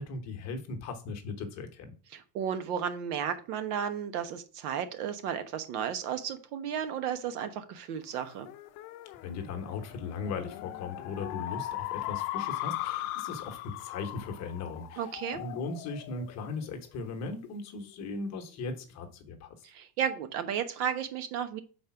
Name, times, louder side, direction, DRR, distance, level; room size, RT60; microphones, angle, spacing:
voice 1, 0.0-2.0 9.2-19.5, left 4 dB, 35° left, 1.1 m, -38 dB
voice 2, 2.1-8.5 15.0-15.4 19.6-21.6, right 8 dB, 70° right, 1.1 m, -33 dB
sound 1, 8.1-17.0, left 15 dB, 60° left, 0.6 m, -39 dB
5.2 x 4.2 x 5.9 m
supercardioid pair, 155°, 47 cm